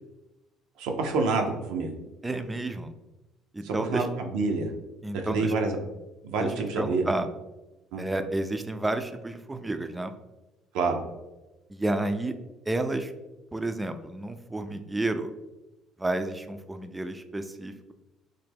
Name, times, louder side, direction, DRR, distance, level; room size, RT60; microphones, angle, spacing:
voice 1, 0.8-1.9 3.6-4.7 5.3-5.8 6.2-7.1 7.9-8.0 10.7-11.0, right 3 dB, 80° right, 3 dB, 0.5 m, -27 dB
voice 2, 2.2-2.9 3.5-4.1 5.0-5.5 6.4-7.3 8.0-10.1 11.7-12.4 12.7-13.1 13.5-15.3 16.0-17.9, right 2 dB, 15° right, 8 dB, 0.3 m, -31 dB
3.2 x 2.1 x 3.3 m, 1.0 s
supercardioid pair, 75°, 0 cm